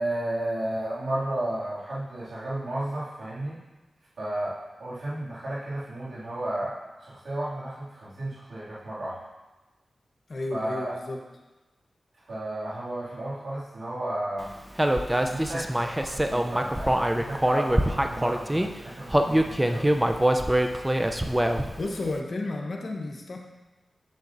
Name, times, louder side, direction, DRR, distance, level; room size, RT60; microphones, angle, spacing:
voice 1, 0.0-3.6 4.2-9.2 10.5-11.0 12.3-14.5 15.2-19.9, right 1 dB, 80° right, -8 dB, 2.4 m, -33 dB
voice 2, 10.3-11.2 21.8-23.4, left 2 dB, 65° left, 1 dB, 1.0 m, -32 dB
Human voice, 14.8-18.7 19.1-21.8, right 1 dB, 15° right, 0.5 m, -24 dB
8.0 x 7.0 x 2.6 m, 1.1 s
cardioid pair, 50°, 0 cm